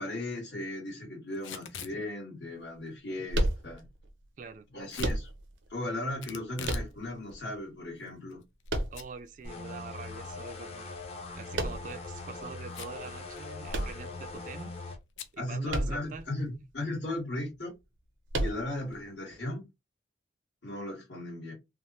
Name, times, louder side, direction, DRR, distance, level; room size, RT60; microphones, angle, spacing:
voice 1, 0.0-3.8 4.7-5.3 5.7-8.4 15.4-17.7 18.4-19.7 20.6-21.5, left 1 dB, 70° left, 1.4 m, -36 dB
Packing tape duct tape / Tearing, 1.3-2.0 4.9-5.2 6.2-6.9 7.3-7.4 8.1-8.7 8.9-9.1 9.5-9.6 11.5-11.8 12.7-13.1 13.4-13.5 13.7-14.1 15.2-15.3, left 8 dB, 90° left, 0.4 m, -43 dB
sound 1, 3.3-4.1 5.0-5.7 6.6-7.4 8.7-9.5 11.5-12.1 13.7-14.6 15.7-16.3 16.5-16.6 18.3-18.9, right 1 dB, 85° right, 0.6 m, -32 dB
voice 2, 4.4-4.7 8.9-11.0 11.3-14.7 15.3-16.3, right 5 dB, 45° right, 0.3 m, -44 dB
sound 2, 9.4-15.0, left 3 dB, 35° left, 0.5 m, -42 dB
3.2 x 2.0 x 2.7 m
head